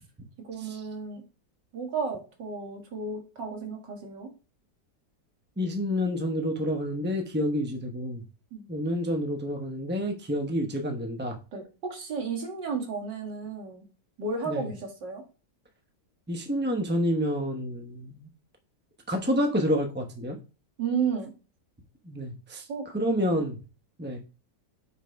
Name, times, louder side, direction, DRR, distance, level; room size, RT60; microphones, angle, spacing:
voice 1, 0.4-1.2 1.7-4.3 8.5-8.6 11.5-13.8 14.2-15.2 20.8-21.3 22.7-23.5, right 5 dB, 90° right, 3 dB, 2.4 m, -33 dB
voice 2, 5.6-8.2 8.7-11.4 14.5-14.7 16.3-18.3 19.1-20.4 22.1-22.6 22.9-23.6 24.0-24.2, equal, 10° right, 3 dB, 0.5 m, -28 dB
7.2 x 3.5 x 5.2 m, 0.33 s
omnidirectional pair, 1.8 m